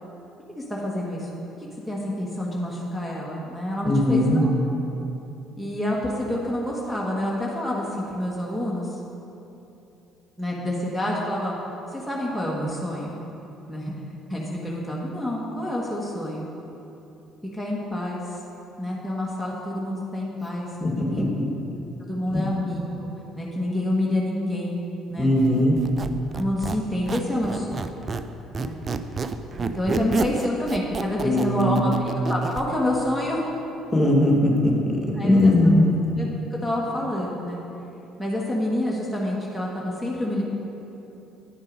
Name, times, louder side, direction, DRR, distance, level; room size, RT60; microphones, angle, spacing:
voice 1, 0.5-1.3 1.9-4.5 5.6-9.0 10.4-11.5 11.9-13.1 13.7-13.9 14.3-16.4 17.5-18.4 18.8-21.3 22.1-23.1 23.3-24.8 25.1-25.3 26.3-27.9 28.6-28.8 29.6-31.9 32.3-33.4 35.1-35.8 36.2-37.6 38.2-40.4, left 1 dB, ahead, -4 dB, 1.5 m, -28 dB
voice 2, 3.8-4.4 20.8-21.3 22.3-22.5 25.2-25.8 31.2-31.8 33.9-36.0, left 1 dB, 25° left, -1 dB, 1.8 m, -20 dB
Squeak, 25.8-28.3 28.5-32.7, right 4 dB, 40° right, 0.4 m, -29 dB
9.6 x 5.3 x 5.3 m, 2.9 s
hypercardioid pair, 65°, 0 cm